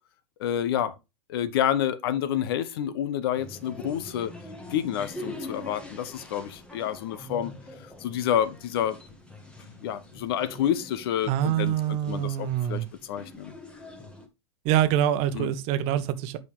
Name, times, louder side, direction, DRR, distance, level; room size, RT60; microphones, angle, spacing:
voice 1, 0.4-0.9 1.3-4.3 4.7-7.5 8.0-9.0 9.8-13.5 15.3-15.5, left 10 dB, 60° left, 1.0 m, -29 dB
sound 1, 3.3-14.3, left 1 dB, 5° left, 1.6 m, -44 dB
voice 2, 11.3-12.9 14.6-16.4, right 11 dB, 50° right, 1.0 m, -25 dB
8.3 x 5.3 x 3.6 m
hypercardioid pair, 100°, 14 cm